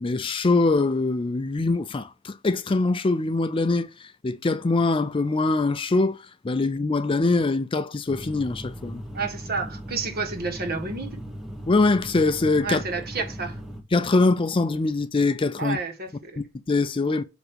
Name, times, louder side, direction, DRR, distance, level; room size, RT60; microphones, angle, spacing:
voice 1, 0.0-6.2 6.4-9.0 11.7-12.8 13.9-15.8 16.4-17.2, left 3 dB, 25° left, 0.4 m, -23 dB
sound 1, 8.1-13.8, equal, ahead, 1.0 m, -38 dB
voice 2, 9.1-11.2 12.6-13.6 15.6-16.4, right 4 dB, 50° right, 1.5 m, -30 dB
8.2 x 2.9 x 6.2 m
head